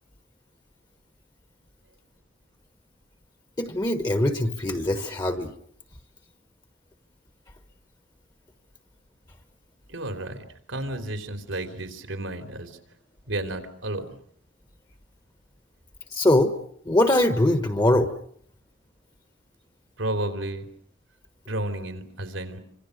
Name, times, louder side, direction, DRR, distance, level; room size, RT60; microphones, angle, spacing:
voice 1, 3.6-5.5 16.1-16.5 16.9-18.1, left 1 dB, 20° left, 9 dB, 1.3 m, -22 dB
voice 2, 9.9-12.8 13.3-14.1 20.0-20.7 21.5-22.6, right 1 dB, 90° right, 7 dB, 3.5 m, -32 dB
27.0 x 26.0 x 6.6 m, 0.64 s
head